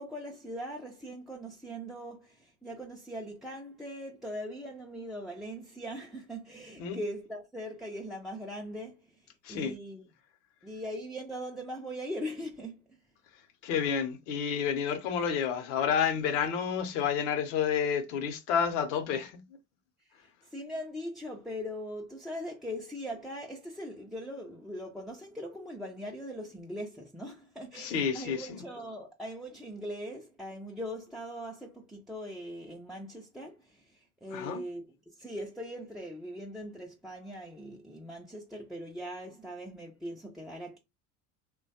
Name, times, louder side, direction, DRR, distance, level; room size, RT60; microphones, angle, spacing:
voice 1, 0.0-10.0 10.6-13.0 20.1-40.8, equal, ahead, 0.4 m, -41 dB
voice 2, 13.6-19.4 27.7-28.6 34.3-34.6, left 7 dB, 70° left, 0.7 m, -30 dB
2.9 x 2.2 x 2.7 m
hypercardioid pair, 75°, 38 cm